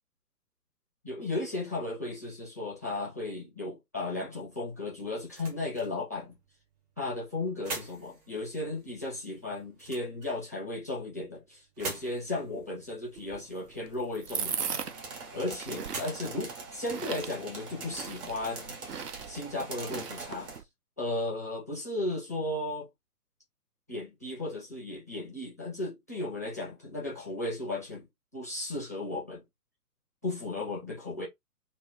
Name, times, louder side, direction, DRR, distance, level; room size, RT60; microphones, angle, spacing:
voice 1, 1.0-6.4 7.0-14.8 15.3-18.8 19.3-20.5 21.0-22.9 23.9-28.1 28.3-29.4 30.2-31.3, left 2 dB, 10° left, 0.4 m, -35 dB
Toaster up and down, 4.5-18.0, right 3 dB, 25° right, 0.8 m, -47 dB
sound 1, 13.2-20.6, right 7 dB, 80° right, 0.7 m, -39 dB
sound 2, 14.3-20.6, right 4 dB, 45° right, 1.5 m, -43 dB
3.2 x 2.1 x 3.3 m
figure-of-eight pair, 125°, 46 cm